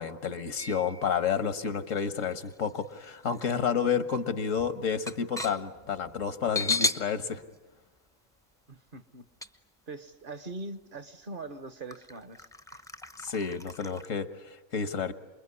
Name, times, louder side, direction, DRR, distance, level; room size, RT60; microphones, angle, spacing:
voice 1, 0.0-7.4 13.2-15.1, left 6 dB, 80° left, 11 dB, 1.7 m, -30 dB
sound 1, 0.6-1.3 1.9-3.5 3.9-4.0 4.4-7.1 7.5-7.6 9.4-9.5 10.4-10.5 11.0-11.1 11.9-14.1, left 3 dB, 5° left, 0.6 m, -35 dB
voice 2, 8.7-9.3 9.9-12.8, right 2 dB, 45° right, 12 dB, 1.2 m, -42 dB
28.5 x 21.5 x 9.7 m, 1.1 s
omnidirectional pair, 1.3 m